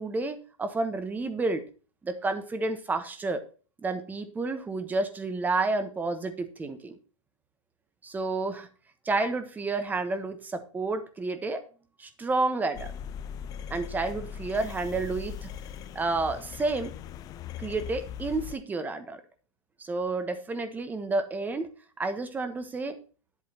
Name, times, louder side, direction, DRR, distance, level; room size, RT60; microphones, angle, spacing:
voice 1, 0.0-1.6 2.0-3.4 3.8-6.9 8.0-8.7 9.0-11.6 12.0-12.9 13.7-15.5 15.9-16.9 17.6-19.2 19.8-21.7 22.0-23.0, right 3 dB, 10° right, 10 dB, 1.1 m, -30 dB
sound 1, 12.7-18.5, left 8 dB, 20° left, 0.4 m, -40 dB
10.0 x 8.2 x 2.9 m, 0.36 s
hypercardioid pair, 140°, 17 cm